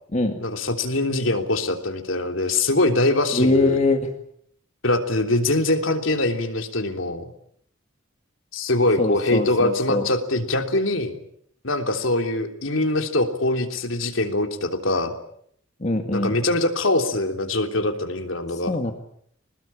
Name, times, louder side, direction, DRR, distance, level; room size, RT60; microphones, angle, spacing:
voice 1, 0.4-3.8 4.8-7.2 8.5-11.2 11.6-15.1 16.1-18.7, left 2 dB, 80° left, 5 dB, 3.4 m, -23 dB
voice 2, 3.3-4.1 9.0-10.1 15.8-16.3 18.7-18.9, left 2 dB, 35° left, 5 dB, 2.0 m, -22 dB
26.5 x 20.0 x 8.7 m, 0.68 s
head